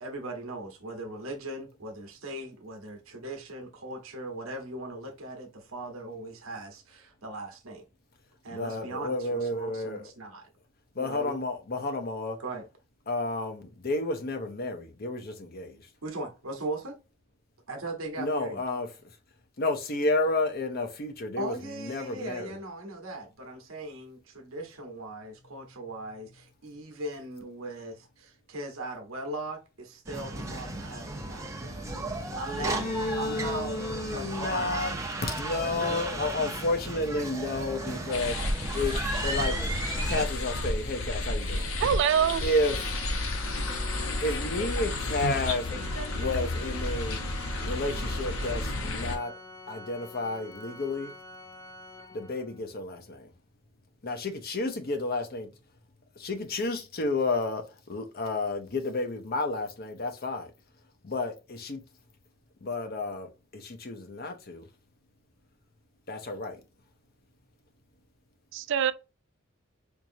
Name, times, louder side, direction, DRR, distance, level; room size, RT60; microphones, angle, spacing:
voice 1, 0.0-7.8 8.4-10.5 11.0-11.4 12.4-12.6 16.0-16.9 17.7-18.6 21.4-31.8 32.4-33.8 34.1-34.9 35.7-36.0, right 2 dB, 80° right, 1.0 m, -39 dB
voice 2, 8.5-10.1 10.9-12.4 13.1-15.9 18.2-19.2 19.6-22.6 32.6-38.3 38.7-39.7 40.0-41.7 42.4-42.9 44.2-45.9 46.2-47.2 47.6-49.3 49.7-51.1 52.1-53.3 54.0-55.5 56.2-60.5 61.0-61.8 62.6-64.7 66.1-66.6, left 2 dB, 45° left, 0.7 m, -31 dB
sound 1, 30.1-40.3, right 2 dB, 15° right, 0.8 m, -35 dB
sound 2, 38.1-49.2, left 2 dB, 80° left, 0.9 m, -31 dB
voice 3, 41.8-42.4 68.5-68.9, right 8 dB, 60° right, 0.3 m, -24 dB
Organ, 41.9-52.7, left 1 dB, 15° left, 0.4 m, -46 dB
4.6 x 2.6 x 2.7 m
head